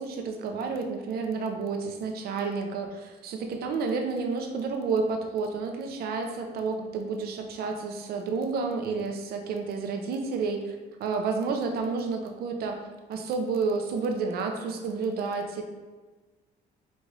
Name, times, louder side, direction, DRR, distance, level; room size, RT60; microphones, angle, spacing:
voice 1, 0.0-12.8 13.1-15.6, right 4 dB, 65° right, 3 dB, 0.7 m, -30 dB
5.2 x 2.5 x 3.2 m, 1.3 s
cardioid pair, 110°, 17 cm